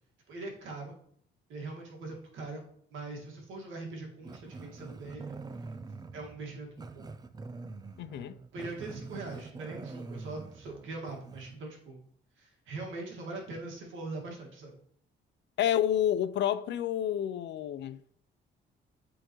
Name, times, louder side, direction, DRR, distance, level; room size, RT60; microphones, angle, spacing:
voice 1, 0.3-0.9 1.5-2.6 2.9-5.4 6.1-7.1 8.5-12.0 12.4-14.8, right 3 dB, 80° right, 1.8 m, -41 dB
Growling, 4.2-11.6, right 4 dB, 20° right, 0.4 m, -45 dB
voice 2, 8.0-8.4 15.6-18.2, left 10 dB, 65° left, 0.4 m, -29 dB
11.0 x 3.8 x 3.0 m
cardioid pair, 145°, 20 cm